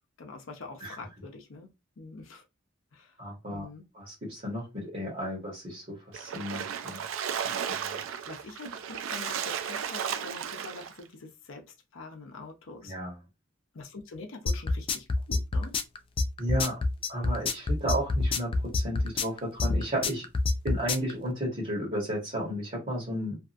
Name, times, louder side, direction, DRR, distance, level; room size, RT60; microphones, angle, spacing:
voice 1, 0.2-1.7 2.0-2.4 2.9-3.2 3.5-3.9 8.2-12.9 13.7-15.7, left 3 dB, 80° left, 0.6 m, -45 dB
voice 2, 3.2-3.7 3.9-7.0 7.7-7.9 12.8-13.2 16.4-16.8 17.1-20.2 20.6-23.4, equal, 40° right, 1.2 m, -33 dB
Splash splatter, 6.1-11.0, right 8 dB, 85° right, 0.4 m, -34 dB
sound 1, 14.5-21.1, left 3 dB, 25° left, 0.3 m, -26 dB
2.7 x 2.4 x 2.5 m
head